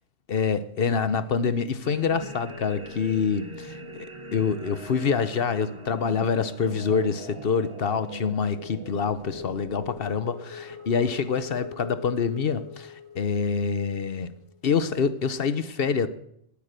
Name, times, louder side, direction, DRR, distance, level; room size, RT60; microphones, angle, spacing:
voice 1, 0.3-14.3 14.6-16.1, left 6 dB, 65° left, 1.0 m, -26 dB
sound 1, 1.8-14.6, left 1 dB, 30° right, 1.3 m, -41 dB
19.0 x 8.4 x 6.7 m
omnidirectional pair, 1.1 m